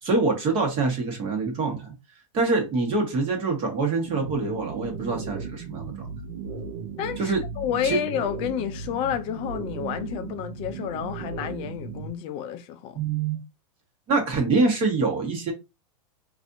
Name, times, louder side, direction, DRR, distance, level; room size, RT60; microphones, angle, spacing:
voice 1, 0.0-1.9 2.3-6.1 7.2-7.4 7.8-8.0 12.9-13.4 14.1-15.5, right 3 dB, 30° right, 1.3 m, -25 dB
sound 1, 4.1-12.1, right 5 dB, 75° right, 0.7 m, -36 dB
voice 2, 7.0-13.0, left 9 dB, 35° left, 0.4 m, -30 dB
3.4 x 2.5 x 2.6 m
supercardioid pair, 145°, 18 cm